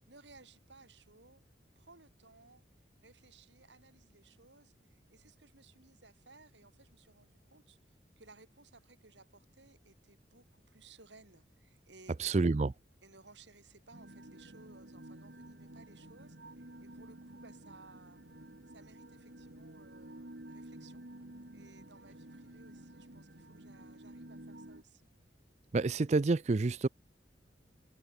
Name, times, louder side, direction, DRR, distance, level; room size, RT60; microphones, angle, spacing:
voice 1, 0.0-1.4 1.8-2.6 3.0-12.4 13.0-18.2 18.7-21.0 21.5-25.0, right 3 dB, 85° right, 5.4 m, -60 dB
voice 2, 12.2-12.7 25.7-26.9, right 3 dB, 40° right, 0.4 m, -28 dB
sound 1, 13.9-24.8, right 1 dB, 70° right, 2.5 m, -51 dB
open air
head